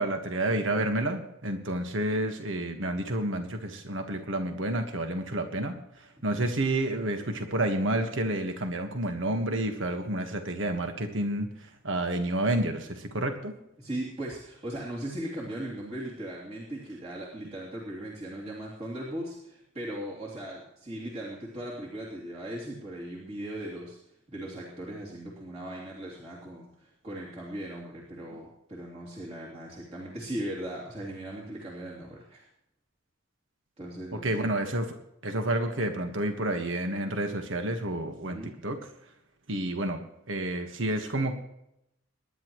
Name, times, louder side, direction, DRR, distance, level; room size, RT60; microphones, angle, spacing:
voice 1, 0.0-13.5 34.1-35.0 35.2-38.8 39.5-40.0 40.3-41.3, right 1 dB, 65° right, 6 dB, 1.5 m, -30 dB
voice 2, 13.8-24.0 24.3-32.5 33.8-34.5 38.2-38.6, right 1 dB, 30° right, -5 dB, 2.9 m, -38 dB
24.5 x 11.0 x 3.1 m, 0.80 s
head